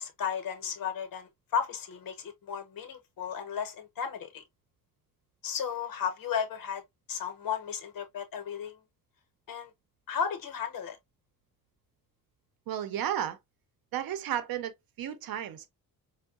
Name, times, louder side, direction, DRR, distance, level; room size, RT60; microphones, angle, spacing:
voice 1, 0.0-4.4 5.4-6.8 7.1-8.8 9.5-9.7 10.1-11.0, left 7 dB, 70° left, 0.9 m, -34 dB
voice 2, 12.7-13.4 13.9-15.7, right 10 dB, 75° right, 0.7 m, -33 dB
4.5 x 2.1 x 2.3 m
cardioid pair, 115°, 35 cm